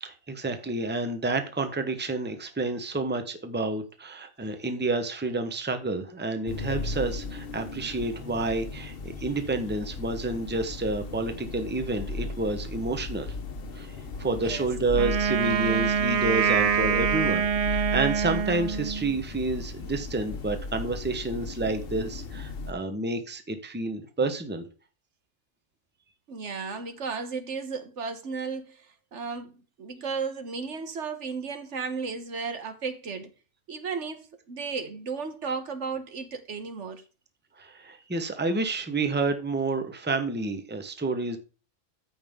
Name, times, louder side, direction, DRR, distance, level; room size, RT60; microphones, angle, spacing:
voice 1, 0.0-13.3 13.7-24.7 37.6-41.4, right 3 dB, 10° right, 1.0 m, -29 dB
sound 1, 6.5-22.7, left 3 dB, 55° left, 1.1 m, -36 dB
voice 2, 14.2-14.7 26.3-29.5 29.8-33.3 33.7-37.0, right 5 dB, 70° right, 1.5 m, -34 dB
Wind instrument woodwind instrument, 14.9-19.2, right 7 dB, 50° right, 0.4 m, -25 dB
14.0 x 5.5 x 3.7 m
omnidirectional pair, 1.3 m